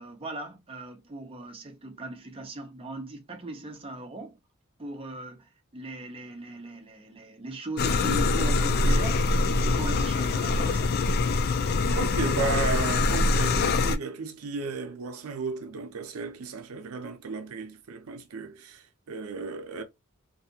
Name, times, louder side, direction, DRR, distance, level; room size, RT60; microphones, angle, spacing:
voice 1, 0.0-4.4 4.8-10.8, right 2 dB, 25° right, 0.6 m, -39 dB
sound 1, 7.8-14.0, left 3 dB, 45° left, 0.3 m, -24 dB
voice 2, 11.9-19.8, right 4 dB, 85° right, 0.5 m, -34 dB
2.6 x 2.4 x 2.7 m
head